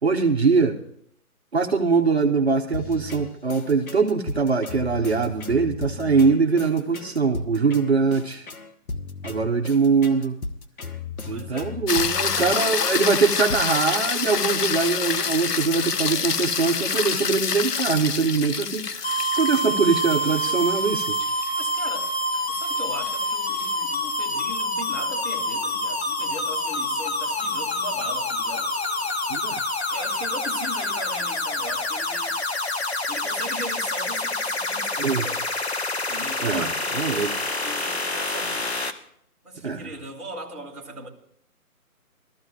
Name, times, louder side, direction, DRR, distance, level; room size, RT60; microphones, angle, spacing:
voice 1, 0.0-0.8 1.5-8.5 9.2-10.4 11.3-19.1 19.4-21.2 29.3-29.6 35.0-35.3 36.4-36.7 36.9-37.3 39.6-39.9, right 4 dB, 45° right, 1.0 m, -22 dB
sound 1, 2.7-15.0, left 3 dB, 65° left, 1.3 m, -36 dB
voice 2, 11.3-11.8 12.1-13.1 21.6-22.1 22.5-28.7 29.9-32.4 33.1-35.5 36.1-38.8 39.4-41.1, right 2 dB, ahead, 1.3 m, -38 dB
sound 2, 11.9-24.3 28.7-28.8, left 6 dB, 90° left, 0.8 m, -28 dB
sound 3, 19.0-38.9, left 1 dB, 45° left, 0.9 m, -27 dB
21.0 x 13.5 x 2.4 m
figure-of-eight pair, 165°, 46 cm